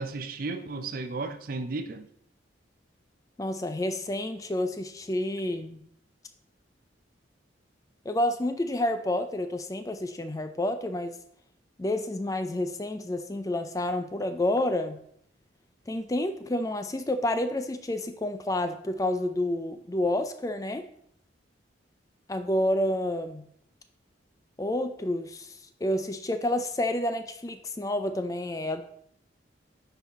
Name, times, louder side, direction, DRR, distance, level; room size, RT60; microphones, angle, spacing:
voice 1, 0.0-2.1, right 3 dB, 45° right, 9 dB, 0.6 m, -34 dB
voice 2, 3.4-5.8 8.1-11.2 11.8-15.0 15.9-20.9 22.3-23.4 24.6-28.8, left 1 dB, 15° left, 9 dB, 0.4 m, -29 dB
9.7 x 4.0 x 4.1 m, 0.67 s
head